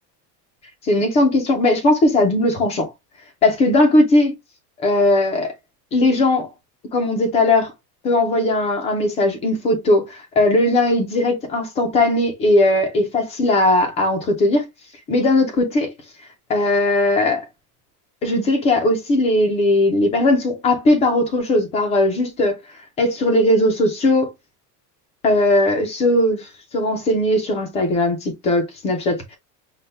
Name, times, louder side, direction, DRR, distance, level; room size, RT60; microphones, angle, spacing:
voice 1, 0.8-2.9 3.4-4.4 4.8-5.5 5.9-6.5 6.9-7.7 8.0-14.7 15.1-15.9 16.5-17.5 18.2-22.6 23.0-24.3 25.2-29.4, left 1 dB, 15° left, 0.3 m, -18 dB
5.5 x 2.1 x 3.1 m
cardioid pair, 170°, 49 cm